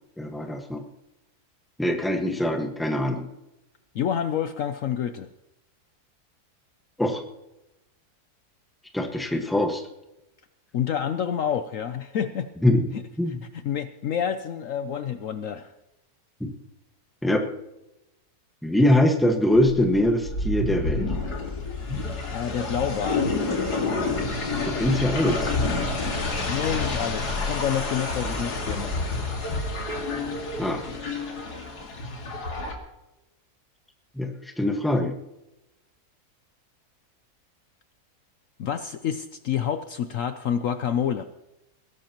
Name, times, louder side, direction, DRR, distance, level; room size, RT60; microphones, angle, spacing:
voice 1, 0.2-0.8 1.8-3.3 7.0-7.2 8.9-9.8 12.6-12.8 13.2-13.4 16.4-16.5 17.2-17.4 18.6-21.0 24.6-25.6 30.6-30.8 34.2-35.1, left 1 dB, ahead, 3 dB, 1.4 m, -23 dB
voice 2, 3.9-5.3 10.7-12.5 12.9-13.0 13.5-15.7 22.3-23.3 26.5-28.9 38.6-41.2, left 8 dB, 65° left, 9 dB, 1.0 m, -28 dB
sound 1, 19.5-32.7, left 3 dB, 85° left, 2.7 m, -29 dB
21.0 x 16.5 x 3.0 m, 0.92 s
omnidirectional pair, 1.7 m